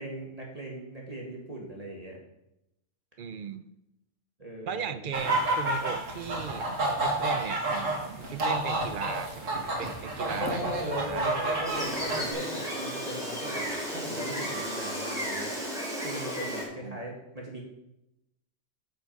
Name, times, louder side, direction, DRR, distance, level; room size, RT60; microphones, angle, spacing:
voice 1, 0.0-2.2 4.4-5.0 10.4-17.6, right 1 dB, 30° right, -2 dB, 1.8 m, -39 dB
voice 2, 3.2-3.6 4.7-10.7 11.0-11.2 11.6-11.7 16.7-17.0, right 7 dB, 55° right, 12 dB, 0.6 m, -37 dB
sound 1, 5.1-12.3, right 2 dB, 70° right, 2.2 m, -30 dB
Gull seagull, 11.6-16.6, equal, ahead, 3.0 m, -34 dB
8.4 x 7.9 x 5.3 m, 0.87 s
omnidirectional pair, 1.4 m